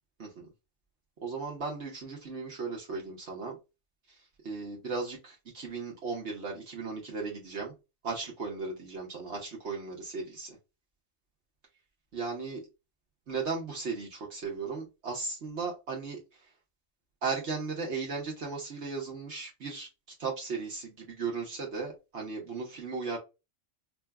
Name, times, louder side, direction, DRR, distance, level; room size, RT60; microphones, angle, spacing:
voice 1, 1.2-3.6 4.4-7.7 8.0-10.6 12.1-12.6 13.3-16.5 17.2-19.9 20.2-23.2, right 4 dB, 60° right, 1.2 m, -36 dB
5.8 x 2.2 x 2.3 m
omnidirectional pair, 1.3 m